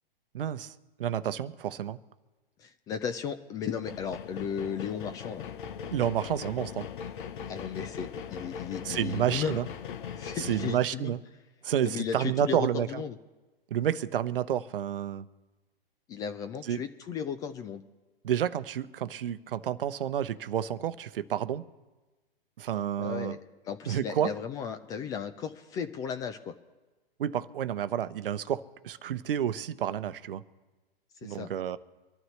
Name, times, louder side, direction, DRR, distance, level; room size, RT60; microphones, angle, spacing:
voice 1, 0.3-0.7 1.0-2.0 5.9-6.9 8.8-9.7 10.4-11.2 11.6-12.9 13.7-15.3 16.6-16.8 18.2-21.6 22.6-23.4 23.9-24.3 27.2-30.4 31.2-31.8, right 10 dB, 65° right, 13 dB, 0.8 m, -30 dB
voice 2, 2.6-5.4 7.5-9.6 10.1-11.2 11.8-13.2 16.1-17.8 23.0-23.4 23.6-26.5 31.2-31.5, left 7 dB, 15° left, 10 dB, 0.3 m, -35 dB
sound 1, 3.8-10.8, left 7 dB, 55° left, 0.9 m, -40 dB
25.0 x 11.5 x 3.2 m, 1.2 s
hypercardioid pair, 120°, 29 cm